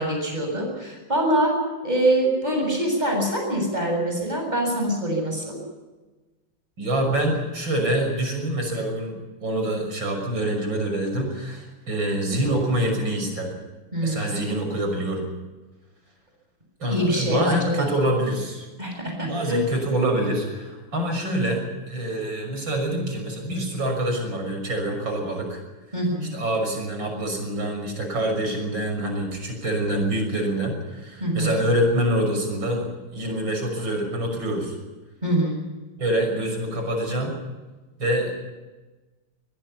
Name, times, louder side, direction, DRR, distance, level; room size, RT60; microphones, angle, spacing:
voice 1, 0.0-1.6 1.8-5.6 13.9-14.4 16.9-17.9 18.8-19.6 25.9-26.3 31.2-31.5 35.2-35.6, right 1 dB, 20° right, 1 dB, 7.7 m, -24 dB
voice 2, 6.8-9.1 9.4-13.5 14.0-15.3 16.8-18.7 19.2-25.6 26.3-34.8 36.0-37.4 38.0-38.3, right 1 dB, 75° right, 3 dB, 6.8 m, -25 dB
22.0 x 22.0 x 5.8 m, 1.2 s
omnidirectional pair, 2.1 m